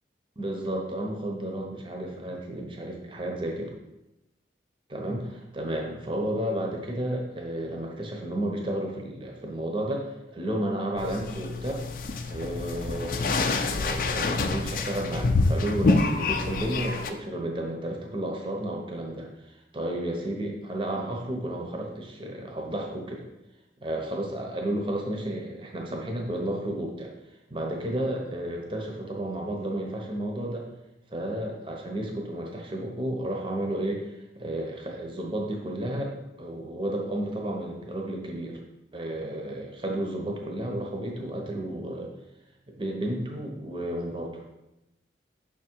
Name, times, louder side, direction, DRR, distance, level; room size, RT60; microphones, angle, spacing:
voice 1, 0.4-3.7 4.9-11.9 12.3-23.2 23.8-27.1 27.5-30.7 31.1-36.1 36.4-38.6 38.9-42.1 42.8-44.4, right 1 dB, 30° right, 0 dB, 0.8 m, -32 dB
sound 1, 11.0-17.1, left 3 dB, 50° left, 0.4 m, -27 dB
5.8 x 3.7 x 4.5 m, 0.94 s
head